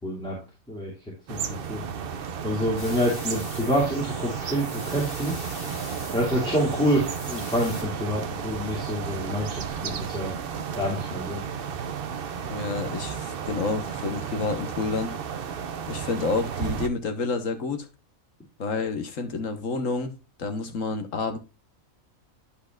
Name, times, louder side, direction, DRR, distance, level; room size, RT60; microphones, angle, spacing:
voice 1, 0.0-0.4 0.7-0.9 1.3-1.8 2.4-5.3 6.1-10.3 10.7-11.4, equal, 5° left, -4 dB, 2.5 m, -27 dB
sound 1, 1.3-16.9, right 7 dB, 50° right, 0.8 m, -33 dB
sound 2, 2.8-7.8, left 1 dB, 40° left, 3.6 m, -42 dB
voice 2, 12.4-15.1 15.9-17.9 18.6-21.4, left 4 dB, 65° left, 6 dB, 1.6 m, -29 dB
11.0 x 5.5 x 2.4 m, 0.31 s
omnidirectional pair, 1.4 m